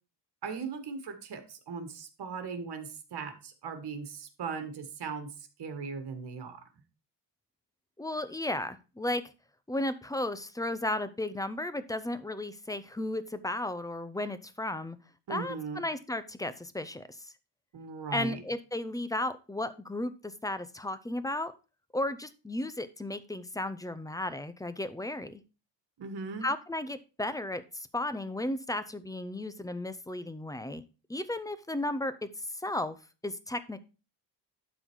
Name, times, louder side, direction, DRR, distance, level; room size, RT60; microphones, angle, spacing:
voice 1, 0.4-5.3 5.6-6.6 15.3-15.8 17.7-18.4 26.0-26.5, right 5 dB, 65° right, 7 dB, 1.7 m, -38 dB
voice 2, 8.0-9.2 9.7-15.0 15.3-17.2 18.1-21.5 21.9-25.4 26.4-30.8 31.1-32.3 32.6-33.0 33.2-33.8, left 1 dB, 10° left, 13 dB, 0.5 m, -34 dB
11.5 x 4.1 x 4.6 m, 0.33 s
wide cardioid pair, 150°, 43 cm